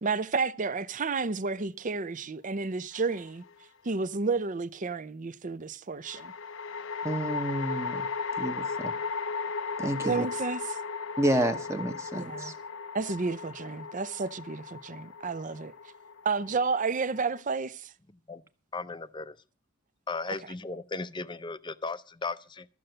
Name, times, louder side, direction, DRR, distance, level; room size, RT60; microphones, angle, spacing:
voice 1, 0.0-3.4 3.8-6.3 10.0-10.8 12.2-12.5 12.9-15.7 16.2-17.9, right 4 dB, 40° right, 0.5 m, -31 dB
sound 1, 2.9-3.6 6.1-17.4, left 5 dB, 65° left, 0.6 m, -36 dB
voice 2, 7.0-8.0 8.3-8.9 9.8-10.3 11.2-12.5, right 1 dB, 15° right, 0.9 m, -29 dB
voice 3, 18.7-19.4 20.1-22.7, left 3 dB, 20° left, 0.6 m, -36 dB
13.5 x 6.7 x 7.8 m
head